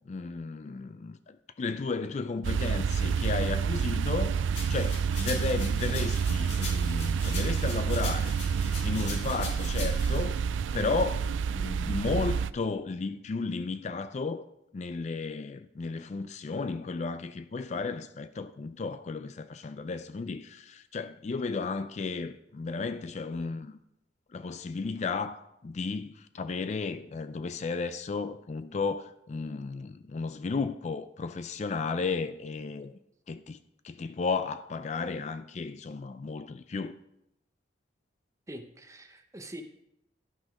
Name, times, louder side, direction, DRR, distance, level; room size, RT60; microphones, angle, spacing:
voice 1, 0.0-8.4 8.8-14.5 14.7-23.8 24.3-32.9 33.3-33.6 33.8-37.0, left 4 dB, 35° left, 0.3 m, -34 dB
sound 1, 2.4-12.5, right 6 dB, 80° right, 0.3 m, -28 dB
sound 2, 4.5-10.2, left 3 dB, 65° left, 2.7 m, -41 dB
voice 2, 38.5-39.6, right 1 dB, 15° right, 0.7 m, -44 dB
11.0 x 6.2 x 4.9 m
head